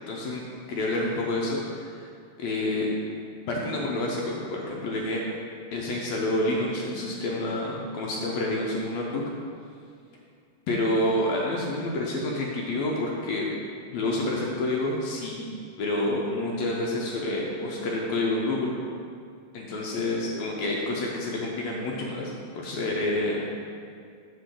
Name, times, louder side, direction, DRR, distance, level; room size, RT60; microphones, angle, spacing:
voice 1, 0.1-2.0 2.4-2.9 3.5-5.2 5.7-9.2 10.7-13.4 13.9-15.5 15.8-18.7 19.5-23.4, left 1 dB, 75° left, -2 dB, 1.7 m, -28 dB
6.8 x 6.4 x 3.7 m, 2.3 s
omnidirectional pair, 3.7 m